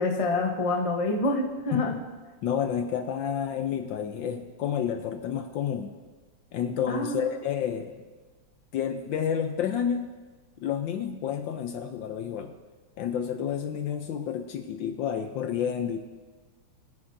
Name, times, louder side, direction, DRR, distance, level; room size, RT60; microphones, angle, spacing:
voice 1, 0.0-1.9 6.9-7.3, left 2 dB, 35° left, 1 dB, 0.5 m, -27 dB
voice 2, 1.7-2.0 2.4-5.9 6.5-8.0 8.7-10.1 10.6-12.5 13.0-16.1, left 8 dB, 70° left, 6 dB, 1.2 m, -30 dB
21.0 x 9.5 x 2.7 m, 1.4 s
omnidirectional pair, 2.4 m